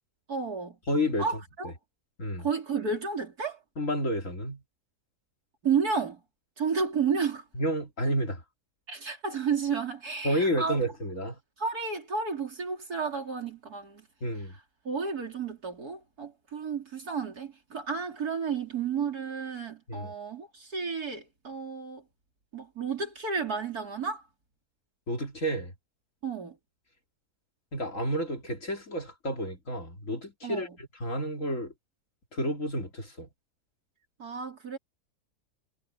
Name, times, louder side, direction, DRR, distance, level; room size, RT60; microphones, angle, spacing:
voice 1, 0.3-0.8 1.2-1.7 2.4-3.6 5.6-6.2 6.6-7.4 8.9-10.8 11.6-14.0 14.9-22.0 22.5-24.2 26.2-26.6 30.4-30.8 34.2-34.8, right 5 dB, 75° right, 3.7 m, -32 dB
voice 2, 0.9-1.3 1.6-1.7 2.2-2.5 3.8-4.6 7.5-8.4 10.2-11.4 14.2-14.6 19.9-20.1 25.1-25.7 27.7-31.7 32.3-33.3, equal, 55° left, 3.1 m, -30 dB
omnidirectional pair, 1.6 m